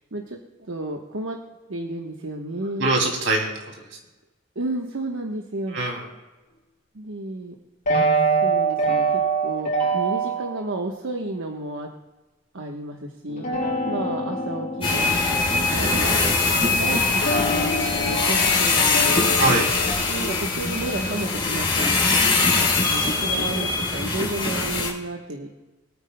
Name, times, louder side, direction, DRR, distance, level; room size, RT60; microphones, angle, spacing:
voice 1, 0.1-1.4 1.7-2.9 4.5-5.8 6.9-7.5 8.0-8.1 8.4-11.9 12.5-13.4 13.8-15.1 15.5-16.2 16.6-19.6 20.1-22.0 22.6-25.5, right 2 dB, 85° right, 1 dB, 1.1 m, -32 dB
voice 2, 2.8-3.6 5.7-6.1 19.4-19.7 23.3-23.7, right 2 dB, 70° right, 1 dB, 2.6 m, -23 dB
sound 1, 7.9-10.6 13.3-16.7 17.2-19.9, right 3 dB, 45° left, 4.7 m, -25 dB
sound 2, 14.8-24.9, left 3 dB, 30° left, 3.6 m, -22 dB
24.0 x 9.3 x 2.2 m, 1.2 s
head